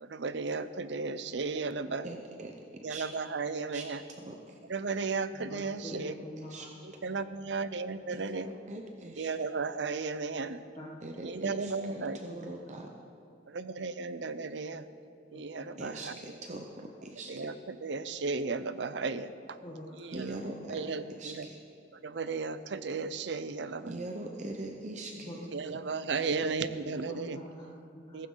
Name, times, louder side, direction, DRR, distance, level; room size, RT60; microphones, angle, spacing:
voice 1, 0.0-2.0 2.8-4.0 4.7-6.1 7.0-8.5 9.2-10.6 11.2-12.2 13.5-14.8 15.3-16.2 17.3-19.6 20.0-20.4 20.7-21.5 22.0-23.9 25.5-27.4 28.1-28.3, right 4 dB, 65° right, 12 dB, 0.6 m, -34 dB
voice 2, 2.0-2.5 2.9-3.2 3.7-3.9 4.2-4.6 5.9-6.7 8.1-9.3 11.0-12.9 15.8-17.5 20.1-20.8 21.1-21.6 23.8-25.3, right 2 dB, 40° right, 2 dB, 0.8 m, -42 dB
voice 3, 5.3-6.7 10.5-11.0 11.9-13.0 15.3-15.9 19.6-20.2 25.1-25.8 26.6-28.3, equal, 25° left, -6 dB, 1.7 m, -47 dB
15.5 x 15.0 x 3.9 m, 2.6 s
head